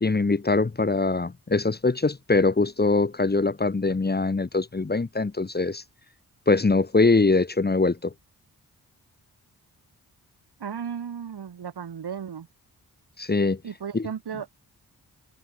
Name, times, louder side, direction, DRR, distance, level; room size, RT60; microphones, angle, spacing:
voice 1, 0.0-5.8 6.5-8.1 13.2-13.6 13.9-14.1, left 3 dB, 25° left, 1.0 m, -23 dB
voice 2, 10.6-12.5 13.6-14.5, right 7 dB, 80° right, 2.0 m, -35 dB
cardioid pair, 55°, 39 cm